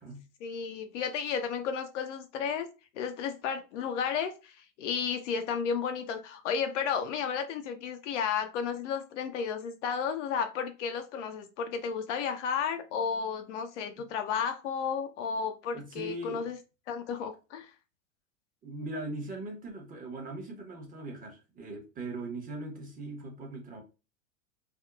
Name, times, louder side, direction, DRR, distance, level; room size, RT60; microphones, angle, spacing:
voice 1, 0.4-2.7 3.0-16.6 16.9-17.7, left 6 dB, 60° left, 0.7 m, -33 dB
voice 2, 15.7-16.5 18.6-23.8, right 2 dB, 20° right, 0.9 m, -40 dB
3.5 x 2.3 x 2.3 m
hypercardioid pair, 100°, 41 cm